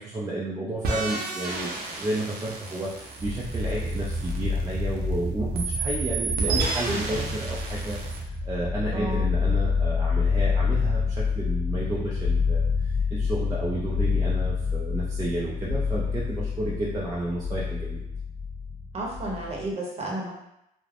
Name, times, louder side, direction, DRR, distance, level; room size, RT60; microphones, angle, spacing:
voice 1, 0.0-8.0 8.5-18.0, right 1 dB, 20° right, -5 dB, 0.4 m, -32 dB
sound 1, 0.8-5.1 5.5-8.2, right 3 dB, 65° right, 0.6 m, -32 dB
sound 2, 3.2-19.7, left 4 dB, 30° left, 1.2 m, -28 dB
voice 2, 6.5-7.3 8.9-9.3 18.9-20.3, right 1 dB, 35° right, -2 dB, 0.9 m, -32 dB
3.2 x 2.1 x 2.4 m, 0.82 s
cardioid pair, 110°, 17 cm